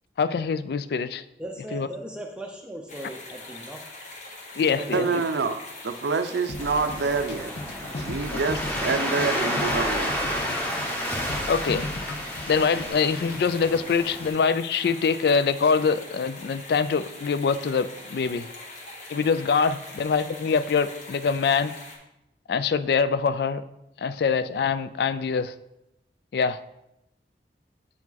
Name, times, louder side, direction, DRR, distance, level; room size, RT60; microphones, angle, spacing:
voice 1, 0.2-1.2 1.7-1.9 4.6-5.2 8.3-8.4 11.5-11.9 12.5-18.5 19.1-21.8 22.5-23.6 24.0-25.5 26.3-26.6, left 5 dB, 65° left, 15 dB, 0.3 m, -24 dB
voice 2, 1.4-3.8 4.6-5.2, right 1 dB, 5° right, 2 dB, 0.5 m, -37 dB
sound 1, 2.9-22.0, left 2 dB, 45° left, 1.3 m, -43 dB
voice 3, 4.9-7.5 8.0-10.1, right 4 dB, 80° right, 9 dB, 0.5 m, -27 dB
sound 2, 6.5-12.9, left 2 dB, 80° left, 0.7 m, -37 dB
Waves surf, 6.6-14.3, equal, 10° left, 1.0 m, -30 dB
8.3 x 4.8 x 3.9 m, 0.87 s
head